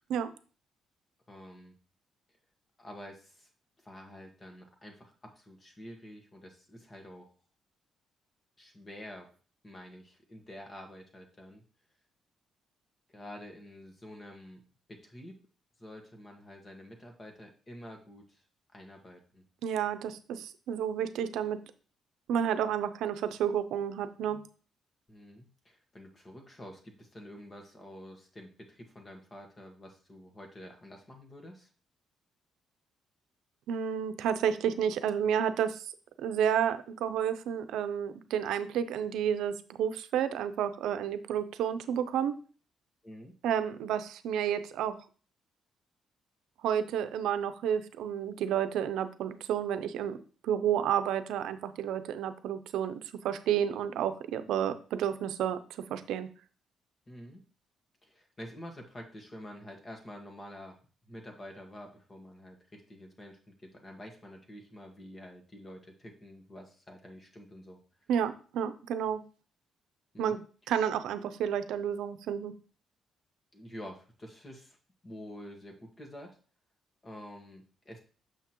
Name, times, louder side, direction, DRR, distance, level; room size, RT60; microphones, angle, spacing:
voice 1, 1.3-1.7 2.8-3.5 3.8-7.3 8.6-9.3 9.6-11.6 13.1-14.6 14.9-15.4 15.8-18.4 18.7-19.4 25.1-31.7 43.0-43.3 57.1-57.4 58.0-60.8 61.1-67.8 70.1-70.4 73.5-74.8 75.0-76.4 77.0-78.0, left 1 dB, 25° left, 2 dB, 1.7 m, -48 dB
voice 2, 19.6-21.6 22.3-24.4 33.7-35.9 36.2-42.4 43.4-45.0 46.6-50.2 50.4-56.3 68.1-69.2 70.2-70.4 70.7-72.5, right 9 dB, 85° right, 11 dB, 0.6 m, -31 dB
7.2 x 5.8 x 3.0 m, 0.39 s
cardioid pair, 90°, 0 cm